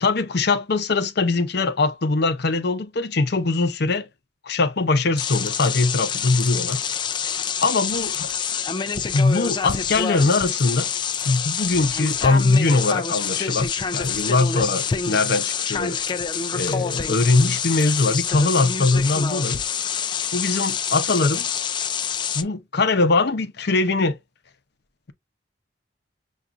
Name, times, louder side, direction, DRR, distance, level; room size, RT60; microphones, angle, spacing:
voice 1, 0.0-4.1 4.4-6.8 7.6-8.3 9.1-10.9 11.2-16.0 16.5-19.6 20.3-21.6 22.3-24.2, left 3 dB, 60° left, 0.7 m, -21 dB
sound 1, 5.2-22.4, left 7 dB, 25° left, 0.3 m, -27 dB
7.0 x 2.4 x 2.4 m
head